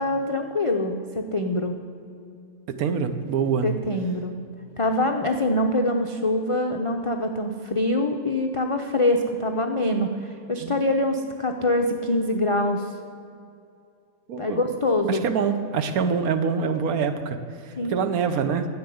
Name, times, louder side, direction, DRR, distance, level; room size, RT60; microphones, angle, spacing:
voice 1, 0.0-1.8 3.6-4.4 4.8-13.0 14.4-15.2 17.8-18.0, left 1 dB, 60° left, 3 dB, 0.3 m, -24 dB
voice 2, 2.7-3.7 10.6-10.7 14.3-14.6 15.1-17.4 17.6-18.7, right 6 dB, 75° right, 9 dB, 1.3 m, -25 dB
10.0 x 8.0 x 7.7 m, 2.5 s
omnidirectional pair, 1.6 m